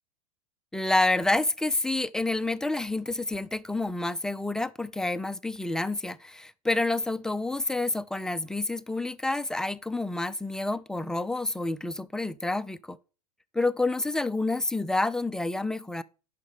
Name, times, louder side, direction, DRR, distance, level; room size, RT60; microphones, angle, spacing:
voice 1, 0.7-13.0 13.5-16.0, left 2 dB, 5° left, 0.3 m, -28 dB
9.1 x 5.9 x 4.9 m
hypercardioid pair, 115°, 21 cm